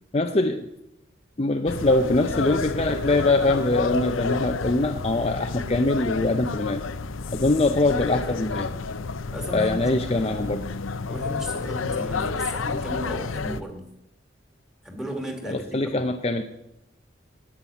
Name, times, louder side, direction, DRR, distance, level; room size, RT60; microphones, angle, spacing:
voice 1, 0.1-0.7 1.4-6.8 7.3-8.7 9.5-10.6 15.5-16.4, left 2 dB, 30° left, 5 dB, 0.6 m, -23 dB
sound 1, 1.7-13.6, left 4 dB, 90° left, 0.7 m, -30 dB
voice 2, 9.3-10.4 11.1-13.8 14.8-16.1, equal, 5° right, 2 dB, 2.2 m, -35 dB
9.8 x 8.8 x 9.9 m, 0.85 s
head